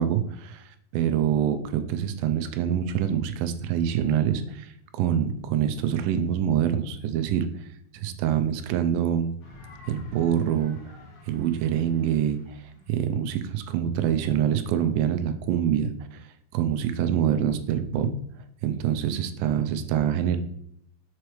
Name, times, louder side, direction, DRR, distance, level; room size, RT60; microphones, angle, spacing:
voice 1, 0.0-7.7 7.9-9.3 9.9-10.8 11.3-16.3 16.5-18.1 18.6-20.4, right 9 dB, 85° right, 8 dB, 2.3 m, -25 dB
sound 1, 9.4-14.3, left 2 dB, 55° left, 1.8 m, -50 dB
7.2 x 4.6 x 3.1 m, 0.73 s
omnidirectional pair, 4.2 m